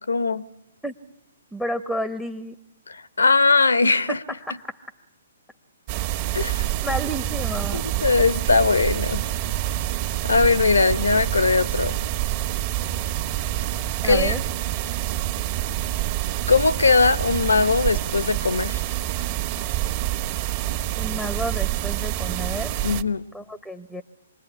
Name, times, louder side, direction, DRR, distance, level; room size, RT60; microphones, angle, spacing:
voice 1, 0.1-0.4 2.9-4.2 6.3-6.6 7.7-9.2 10.2-12.0 14.0-14.4 16.5-18.8 22.8-23.2, left 4 dB, 85° left, 0.9 m, -20 dB
voice 2, 1.5-2.6 4.1-4.2 4.4-4.7 6.8-7.8 14.0-14.4 21.0-22.8 23.3-24.0, equal, ahead, 0.9 m, -30 dB
sound 1, 5.9-23.0, right 13 dB, 40° right, 1.7 m, -27 dB
26.5 x 20.5 x 9.9 m
hypercardioid pair, 130°, 0 cm